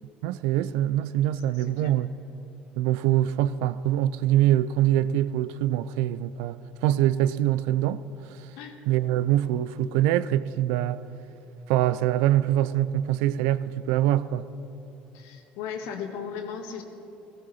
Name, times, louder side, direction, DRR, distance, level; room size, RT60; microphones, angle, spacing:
voice 1, 0.2-2.1 2.8-6.6 6.8-8.0 8.9-11.0 11.7-14.4, right 12 dB, 70° right, 0.4 m, -24 dB
voice 2, 15.1-16.8, left 7 dB, 70° left, 1.6 m, -36 dB
18.0 x 14.5 x 4.2 m
hypercardioid pair, 70°, 5 cm